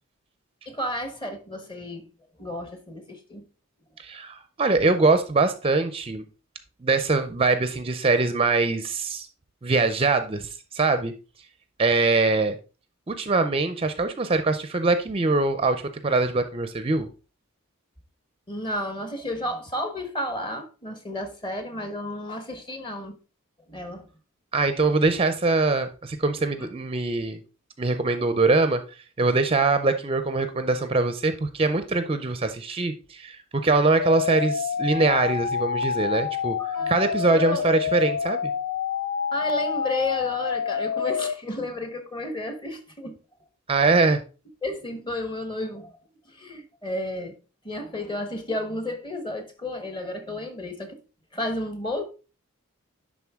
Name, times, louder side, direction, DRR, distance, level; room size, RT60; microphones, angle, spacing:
voice 1, 0.7-2.1 2.4-3.4 18.5-23.2 23.7-24.1 36.6-37.6 39.3-43.2 44.6-45.9 46.4-47.3 47.6-50.9 51.3-52.0, left 1 dB, 25° left, 1.2 m, -32 dB
voice 2, 4.0-6.2 6.8-9.3 9.6-11.1 11.8-12.6 13.1-17.1 24.5-27.4 27.8-28.8 29.2-36.6 36.9-38.5 43.7-44.2, right 3 dB, 25° right, 0.5 m, -23 dB
sound 1, 34.0-41.3, left 7 dB, 60° left, 0.4 m, -27 dB
10.5 x 3.7 x 3.6 m
head